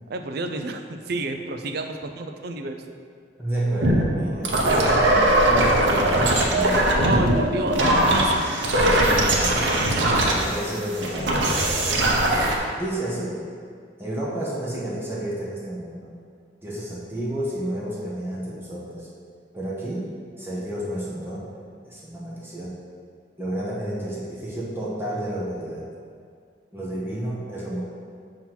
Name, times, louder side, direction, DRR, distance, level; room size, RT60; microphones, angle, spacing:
voice 1, 0.1-2.8 7.0-8.5 9.0-10.2, right 3 dB, 60° right, 6 dB, 0.5 m, -30 dB
voice 2, 3.4-7.0 8.7-9.7 10.2-12.3 12.7-13.4 14.0-16.1 16.6-19.1 19.5-21.5 21.8-22.8 23.4-25.9 26.7-27.8, right 1 dB, 15° right, -7 dB, 1.0 m, -31 dB
sound 1, 3.8-12.6, right 1 dB, 75° right, 0.8 m, -20 dB
7.2 x 3.0 x 5.8 m, 2.1 s
head